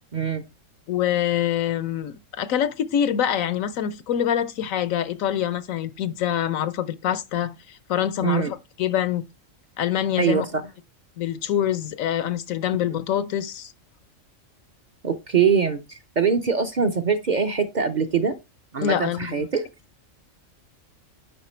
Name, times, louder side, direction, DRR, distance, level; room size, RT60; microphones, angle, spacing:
voice 1, 0.1-0.4 8.2-8.5 10.2-10.6 15.0-18.4 18.7-19.6, right 6 dB, 45° right, 0.6 m, -23 dB
voice 2, 0.9-9.2 9.8-10.5 11.2-13.7 18.8-19.5, left 10 dB, 85° left, 1.1 m, -25 dB
10.0 x 3.8 x 4.3 m
omnidirectional pair, 1.4 m